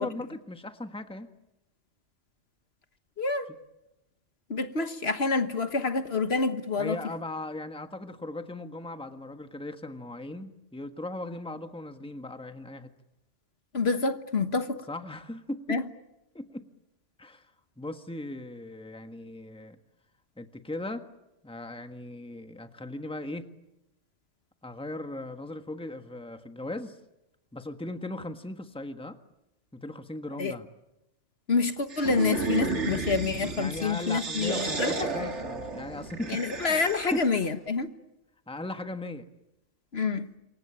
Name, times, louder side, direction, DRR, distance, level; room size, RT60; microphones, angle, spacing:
voice 1, 0.0-1.3 6.8-12.9 14.9-15.8 16.3-16.7 17.2-17.5 17.8-19.8 20.4-21.1 21.4-23.5 24.6-27.0 27.5-29.2 29.7-30.7 33.5-36.8 37.1-37.2 38.5-39.3, left 2 dB, 5° left, 1.4 m, -38 dB
voice 2, 3.2-3.5 4.5-7.0 13.7-14.8 15.7-15.8 30.4-30.5 31.5-35.3 36.3-37.9 39.9-40.3, left 4 dB, 60° left, 1.6 m, -27 dB
sound 1, 31.9-37.4, right 3 dB, 75° right, 2.6 m, -33 dB
27.5 x 23.5 x 8.9 m
omnidirectional pair, 1.2 m